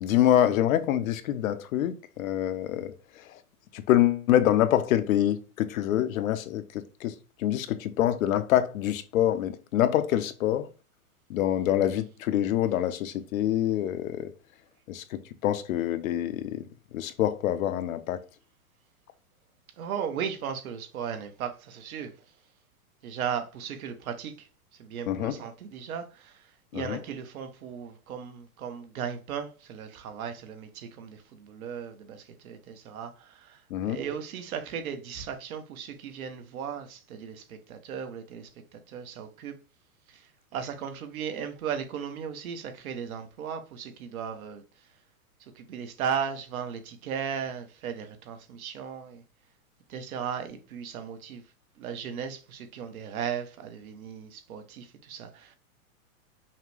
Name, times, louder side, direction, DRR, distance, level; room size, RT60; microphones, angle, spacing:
voice 1, 0.0-2.9 3.7-7.1 7.4-10.7 11.3-14.3 14.9-16.7 16.9-18.2 25.1-25.4 26.7-27.0 33.7-34.0, left 11 dB, 65° left, 0.7 m, -26 dB
voice 2, 19.8-22.1 23.0-24.5 24.8-26.4 26.7-39.6 40.1-40.2 40.5-44.6 45.6-49.2 49.9-51.4 51.8-55.6, right 7 dB, 70° right, 1.0 m, -36 dB
5.6 x 2.2 x 3.2 m
hypercardioid pair, 140°, 44 cm